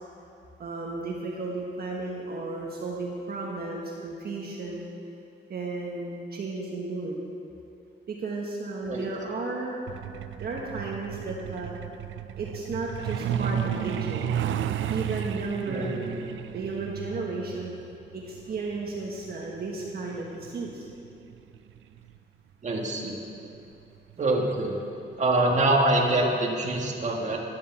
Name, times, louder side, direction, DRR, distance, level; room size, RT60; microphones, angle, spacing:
voice 1, 0.6-4.8 5.5-7.2 8.1-9.8 10.4-11.7 12.4-14.5 14.9-16.2 16.5-17.7 18.1-20.9, right 3 dB, 55° right, -2 dB, 1.5 m, -34 dB
Truck, 9.9-22.2 23.4-23.6 24.0-24.1 24.5-24.8 25.1-25.2 25.7-25.8, right 9 dB, 90° right, 0.5 m, -33 dB
voice 2, 15.7-16.1 22.6-23.2 24.2-24.8 25.2-27.4, right 2 dB, 40° right, -1 dB, 1.7 m, -25 dB
11.5 x 10.5 x 7.2 m, 2.6 s
wide cardioid pair, 165°, 19 cm